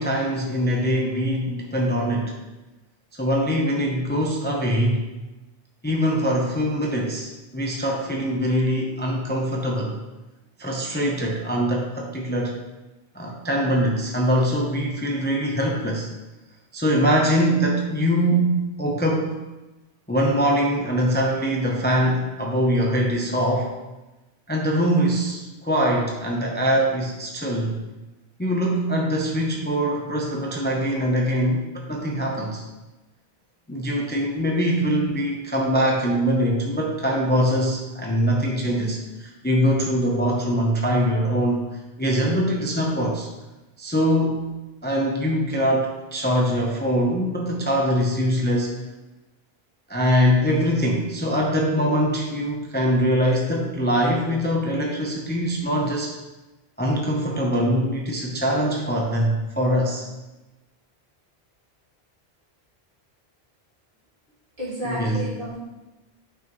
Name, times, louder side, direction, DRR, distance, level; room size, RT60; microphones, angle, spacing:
voice 1, 0.0-2.3 3.1-5.0 5.8-10.0 10.6-12.6 13.1-16.1 16.7-19.4 20.1-23.7 24.5-27.8 28.4-31.6 31.9-32.6 33.7-41.6 42.0-43.3 43.8-44.5 44.8-48.7 49.9-56.1 56.8-60.0 64.8-65.3, equal, 10° left, -1 dB, 0.7 m, -23 dB
voice 2, 64.6-65.6, right 1 dB, 55° right, -9 dB, 3.1 m, -31 dB
9.3 x 6.0 x 3.1 m, 1.1 s
omnidirectional pair, 1.1 m